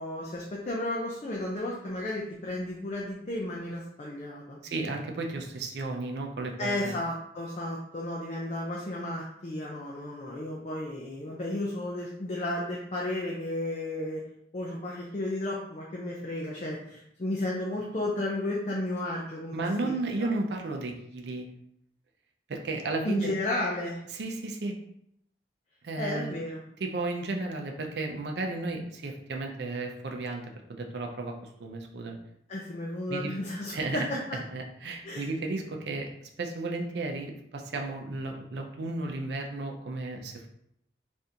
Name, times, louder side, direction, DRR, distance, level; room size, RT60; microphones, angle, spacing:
voice 1, 0.0-4.6 6.6-14.2 14.5-19.9 20.2-20.3 23.0-24.0 26.0-26.6 32.5-34.0 34.3-34.4 35.0-35.3, left 1 dB, 40° left, -3 dB, 0.4 m, -33 dB
voice 2, 4.6-6.9 19.5-21.5 22.5-23.3 24.1-24.7 25.8-26.3 26.8-30.4 30.7-32.2 33.1-33.3 33.7-34.0 34.3-36.1 36.4-40.5, right 2 dB, 70° right, 2 dB, 0.5 m, -33 dB
3.5 x 2.5 x 2.7 m, 0.74 s
head